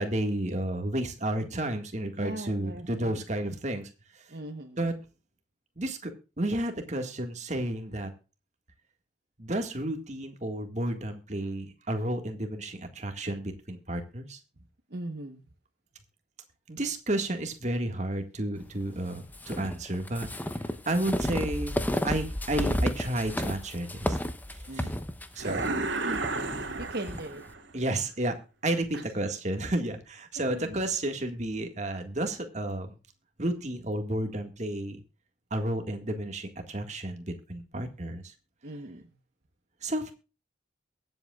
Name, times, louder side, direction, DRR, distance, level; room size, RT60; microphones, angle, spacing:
voice 1, 0.0-3.9 4.8-4.9 5.8-6.1 6.4-8.1 9.4-14.4 16.7-20.3 20.9-21.8 22.0-24.2 24.7-24.9 25.4-25.6 27.7-28.3 28.6-32.9 33.4-35.0 35.5-38.2 39.8-40.1, right 1 dB, 35° right, 5 dB, 1.8 m, -31 dB
voice 2, 2.2-3.2 4.3-4.8 14.9-15.4 24.7-25.0 25.4-25.7 26.0-26.3 26.9-27.4 28.7-29.0 30.4-30.8 38.6-39.1, right 1 dB, 55° right, 5 dB, 1.2 m, -39 dB
sound 1, 19.3-27.2, equal, 10° left, 0.8 m, -32 dB
sound 2, 25.4-27.7, right 3 dB, 70° right, 2.3 m, -32 dB
23.0 x 8.0 x 2.4 m, 0.33 s
head